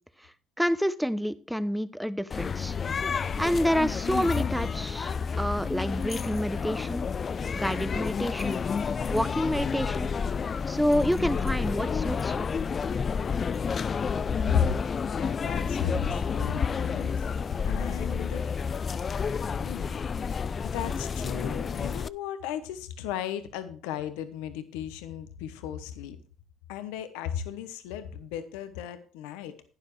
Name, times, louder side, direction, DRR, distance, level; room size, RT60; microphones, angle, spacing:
voice 1, 0.6-2.8 3.4-7.0 7.5-8.6 9.1-10.1 10.7-12.5, equal, ahead, 13 dB, 0.9 m, -28 dB
sound 1, 2.3-22.1, left 6 dB, 45° left, 0.4 m, -30 dB
voice 2, 15.0-18.5 19.6-19.9 20.6-26.2 26.7-29.5, left 9 dB, 85° left, 10 dB, 1.1 m, -35 dB
11.5 x 9.7 x 3.3 m, 0.41 s
supercardioid pair, 65°, 0 cm